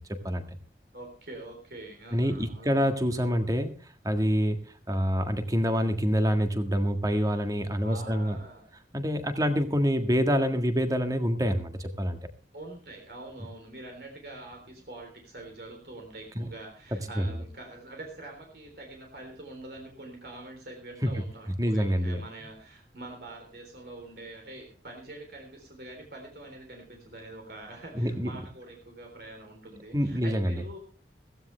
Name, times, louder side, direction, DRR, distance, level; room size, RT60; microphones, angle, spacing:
voice 1, 0.9-2.8 7.8-8.7 12.5-30.8, right 2 dB, 60° right, 2 dB, 3.5 m, -45 dB
voice 2, 2.1-3.7 4.0-4.6 4.9-8.4 8.9-12.2 16.3-16.4 17.2-17.3 21.6-22.2 27.9-28.3 29.9-30.5, equal, 20° right, 7 dB, 1.7 m, -26 dB
16.0 x 15.5 x 3.3 m, 0.38 s
head